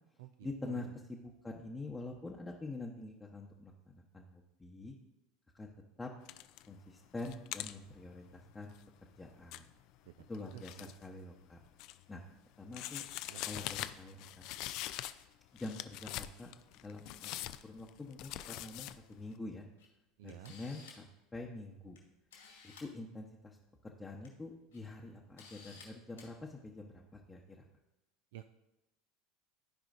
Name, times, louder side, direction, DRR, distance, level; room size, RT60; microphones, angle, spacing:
voice 1, 0.4-4.9 5.5-5.7 6.0-6.1 6.7-8.8 9.2-9.6 10.3-11.6 12.1-12.2 12.6-13.1 13.4-14.5 15.5-16.5 16.8-17.3 17.6-19.7 20.2-22.0 22.8-23.6 23.8-27.6, left 2 dB, 15° left, -2 dB, 0.8 m, -46 dB
sound 1, 6.3-6.7 7.0-11.0 11.4-12.2 12.7-15.3 15.6-19.0, left 14 dB, 55° left, 0.3 m, -44 dB
voice 2, 10.5-10.9 13.3-13.7 20.2-20.5 28.3-28.5, right 13 dB, 65° right, 9 dB, 0.3 m, -51 dB
Camera, 19.8-19.9 20.3-21.1 22.0-22.1 22.3-22.9 24.0-24.3 24.7-24.8 25.4-25.9 26.2-26.3, left 5 dB, 80° left, 2.4 m, -55 dB
14.0 x 4.9 x 2.6 m, 0.94 s
hypercardioid pair, 75°, 0 cm